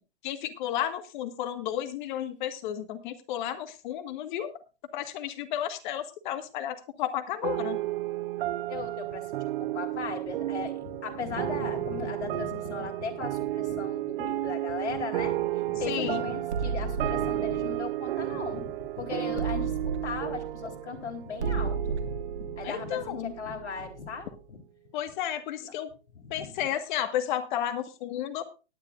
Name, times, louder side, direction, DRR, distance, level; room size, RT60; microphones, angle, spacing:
voice 1, 0.2-4.5 4.9-7.8 15.9-16.2 22.6-23.3 24.9-25.9 26.3-28.4, left 11 dB, 45° left, 9 dB, 1.6 m, -32 dB
sound 1, 7.4-24.2, right 15 dB, 55° right, 0.6 m, -33 dB
voice 2, 8.7-9.3 9.6-24.6 25.6-25.7 26.1-26.5, left 5 dB, 75° left, 1 dB, 3.4 m, -37 dB
sound 2, 16.5-18.8 19.4-24.0, right 5 dB, 75° right, 1.8 m, -34 dB
19.0 x 10.5 x 2.5 m, 0.31 s
hypercardioid pair, 130°, 34 cm